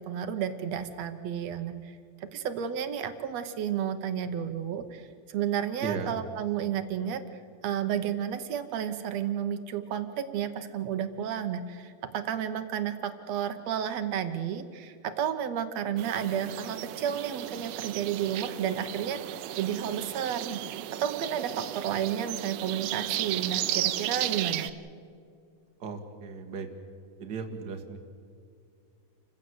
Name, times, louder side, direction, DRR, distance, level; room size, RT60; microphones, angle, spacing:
voice 1, 0.0-1.9 2.3-7.2 7.6-19.2 19.6-24.7, right 9 dB, 65° right, 9 dB, 1.9 m, -32 dB
voice 2, 5.8-6.2 25.8-26.7 27.2-28.0, right 5 dB, 40° right, 5 dB, 1.8 m, -36 dB
sound 1, 16.0-24.7, right 13 dB, 80° right, 2.2 m, -34 dB
29.0 x 15.5 x 7.9 m, 2.3 s
omnidirectional pair, 3.7 m